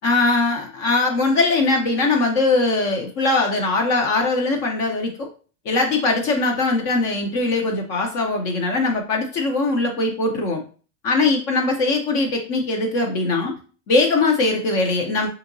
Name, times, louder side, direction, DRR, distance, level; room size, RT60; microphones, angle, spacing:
voice 1, 0.0-5.3 5.7-10.6 11.0-13.5 13.9-15.3, left 3 dB, 45° left, 2 dB, 0.6 m, -21 dB
3.5 x 2.8 x 2.6 m, 0.39 s
supercardioid pair, 140°, 42 cm